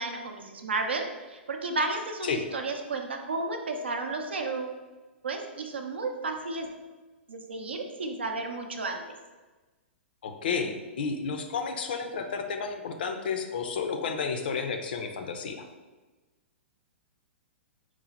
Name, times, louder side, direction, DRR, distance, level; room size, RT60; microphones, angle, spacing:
voice 1, 0.0-4.8 5.2-6.7 7.3-9.0, right 3 dB, 70° right, 4 dB, 0.5 m, -32 dB
voice 2, 10.2-15.6, left 5 dB, 55° left, 6 dB, 0.5 m, -31 dB
4.5 x 2.1 x 4.1 m, 1.2 s
figure-of-eight pair, 105°, 6 cm